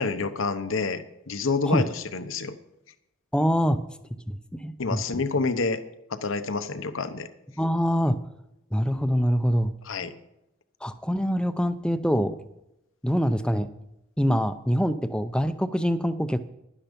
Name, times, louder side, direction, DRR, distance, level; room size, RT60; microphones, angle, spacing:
voice 1, 0.0-2.5 4.8-5.8 6.1-7.3 9.8-10.1, left 4 dB, 75° left, 10 dB, 1.0 m, -28 dB
voice 2, 3.3-3.8 4.3-5.2 7.6-8.2 8.7-9.7 10.8-12.4 13.0-13.7 14.2-16.4, equal, 5° left, 10 dB, 0.5 m, -24 dB
11.5 x 10.0 x 5.3 m, 0.85 s
head